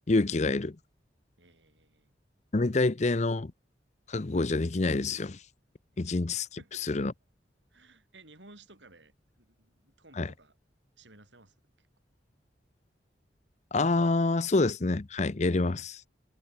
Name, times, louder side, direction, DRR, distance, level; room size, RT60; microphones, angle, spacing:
voice 1, 0.1-0.8 2.5-3.5 4.1-5.4 6.0-6.5 6.8-7.1 10.2-10.3 13.7-16.0, left 3 dB, 40° left, 0.7 m, -27 dB
voice 2, 1.4-2.1 5.9-6.0 6.6-6.9 7.7-10.6 11.0-11.9, right 2 dB, 85° right, 7.6 m, -56 dB
head